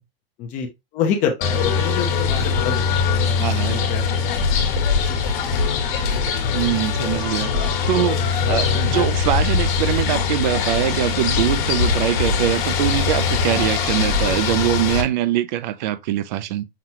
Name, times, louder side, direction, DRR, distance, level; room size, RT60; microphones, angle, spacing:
voice 1, 0.9-4.2 5.0-5.4, left 7 dB, 25° left, 0.7 m, -27 dB
sound 1, 1.4-15.0, left 5 dB, 55° left, 1.4 m, -21 dB
voice 2, 3.4-3.8 6.5-16.7, right 12 dB, 50° right, 0.4 m, -23 dB
5.8 x 2.3 x 2.8 m
supercardioid pair, 150°, 30 cm